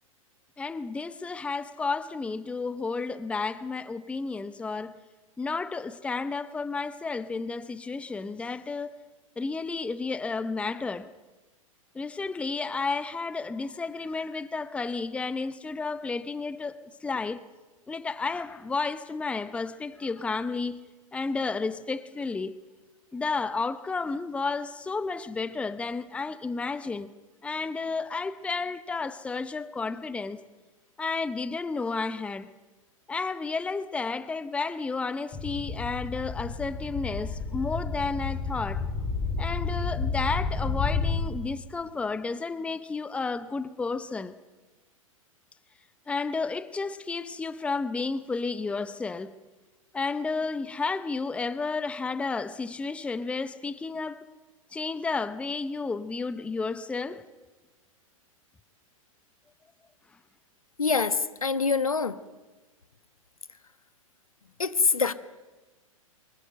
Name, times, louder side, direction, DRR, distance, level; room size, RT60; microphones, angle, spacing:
voice 1, 0.6-5.0 5.4-9.0 9.4-11.1 11.9-17.4 17.9-22.6 23.1-27.1 27.4-30.4 31.0-32.5 33.1-38.8 39.4-44.3 46.1-49.4 49.9-54.3 54.7-57.3, left 4 dB, 5° left, 0.7 m, -32 dB
sound 1, 35.3-41.2, left 4 dB, 25° left, 4.4 m, -31 dB
voice 2, 60.8-62.2 64.6-65.1, left 5 dB, 80° left, 1.2 m, -25 dB
23.5 x 21.5 x 7.9 m
figure-of-eight pair, 105°, 18 cm